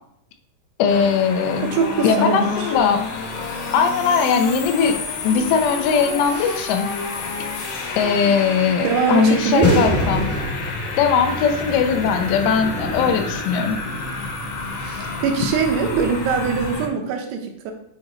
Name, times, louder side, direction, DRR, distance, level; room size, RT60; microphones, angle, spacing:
voice 1, 0.8-1.7 2.0-3.0 3.7-6.9 8.0-10.3 11.0-13.8, left 6 dB, 90° left, 6 dB, 3.0 m, -19 dB
sound 1, 0.9-16.9, left 4 dB, 70° left, 2.4 m, -29 dB
sound 2, 1.4-5.0 5.3-7.0 7.5-7.6 8.4-8.5 9.5-16.3, left 2 dB, 20° left, 0.3 m, -30 dB
voice 2, 1.6-2.7 8.3-8.4 8.8-10.0 15.0-17.7, right 6 dB, 75° right, 3 dB, 2.8 m, -22 dB
8.9 x 3.0 x 4.8 m, 0.70 s
omnidirectional pair, 4.9 m